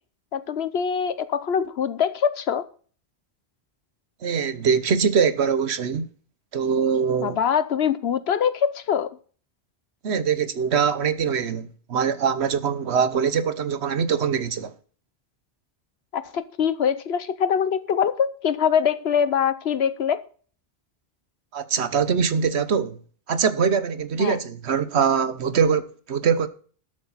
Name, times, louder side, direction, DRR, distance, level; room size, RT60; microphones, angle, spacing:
voice 1, 0.3-2.6 7.2-9.1 16.1-20.2 24.2-24.4, left 7 dB, 75° left, 1.1 m, -23 dB
voice 2, 4.2-6.1 6.5-7.4 10.0-14.7 21.5-23.0 23.3-26.5, right 6 dB, 90° right, 1.3 m, -23 dB
12.5 x 8.5 x 4.1 m
omnidirectional pair, 1.1 m